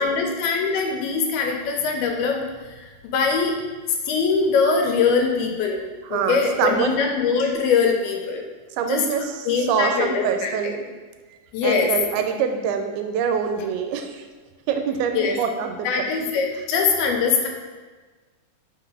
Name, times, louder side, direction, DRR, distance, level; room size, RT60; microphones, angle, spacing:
voice 1, 0.0-2.4 2.7-3.5 4.1-5.8 6.1-8.4 8.9-9.0 9.5-10.8 11.5-11.9 15.1-15.4 15.8-17.5, left 5 dB, 85° left, 2 dB, 2.7 m, -22 dB
voice 2, 6.0-7.0 8.8-10.8 11.6-14.2 14.7-15.9, right 7 dB, 90° right, 6 dB, 2.5 m, -25 dB
5.7 x 4.0 x 4.7 m, 1.3 s
omnidirectional pair, 4.4 m